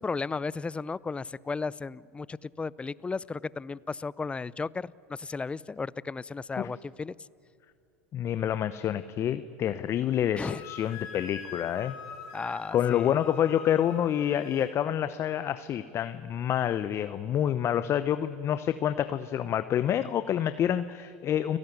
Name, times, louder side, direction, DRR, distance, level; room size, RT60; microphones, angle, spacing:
voice 1, 0.0-7.1 10.4-10.6 12.3-13.2, left 4 dB, 15° left, 22 dB, 0.6 m, -34 dB
voice 2, 8.1-12.0 12.7-21.6, left 10 dB, 40° left, 12 dB, 0.9 m, -28 dB
Wind instrument woodwind instrument, 10.4-14.7, left 6 dB, 55° left, 5.6 m, -44 dB
30.0 x 17.5 x 9.5 m, 2.5 s
hypercardioid pair, 90°, 7 cm